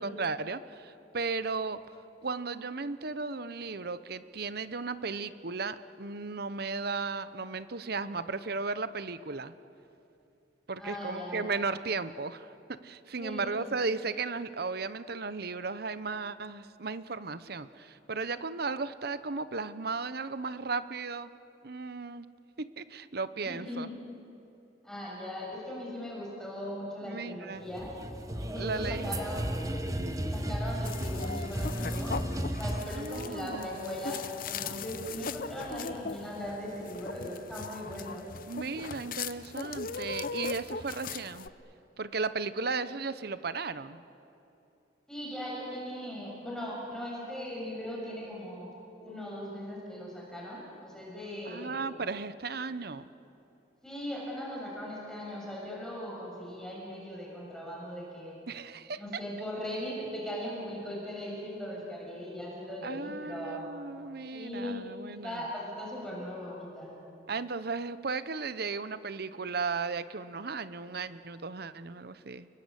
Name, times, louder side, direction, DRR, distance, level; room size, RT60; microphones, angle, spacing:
voice 1, 0.0-1.9 2.2-9.5 10.7-21.3 21.6-22.3 22.6-23.9 27.0-27.7 28.6-29.1 32.9-34.0 38.5-41.5 42.0-44.0 51.4-53.1 58.5-59.0 62.8-65.4 67.3-72.5, right 4 dB, 60° right, 13 dB, 0.9 m, -35 dB
voice 2, 10.8-11.5 13.2-13.8 23.4-23.9 24.8-27.9 28.4-29.5 30.1-32.2 32.5-38.2 45.1-51.8 53.8-58.4 59.0-63.7 64.3-67.0, left 1 dB, 5° left, -4 dB, 7.0 m, -39 dB
sound 1, 27.6-32.8, equal, 20° right, 1.3 m, -34 dB
sound 2, 30.8-41.5, left 5 dB, 55° left, 0.8 m, -39 dB
30.0 x 22.5 x 8.3 m, 2.8 s
head